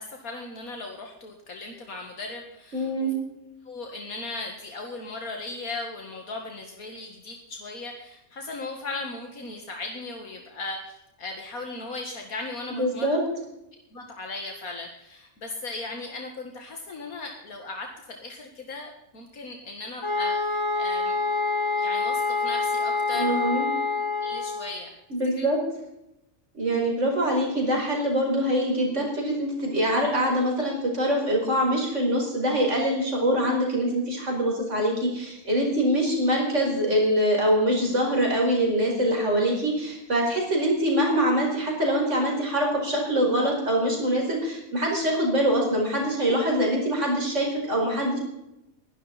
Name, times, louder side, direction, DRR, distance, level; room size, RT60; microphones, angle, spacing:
voice 1, 0.0-3.1 3.7-13.1 13.9-21.3 21.8-23.4 24.2-24.9 25.4-25.5, left 3 dB, 80° left, 2 dB, 2.3 m, -37 dB
voice 2, 2.7-3.1 12.7-13.2 23.1-23.7 25.1-25.6 26.5-48.2, equal, 55° right, 0 dB, 5.3 m, -24 dB
sound 1, 20.0-24.7, left 3 dB, 55° left, 4.5 m, -26 dB
21.5 x 12.0 x 4.2 m, 0.86 s
omnidirectional pair, 1.5 m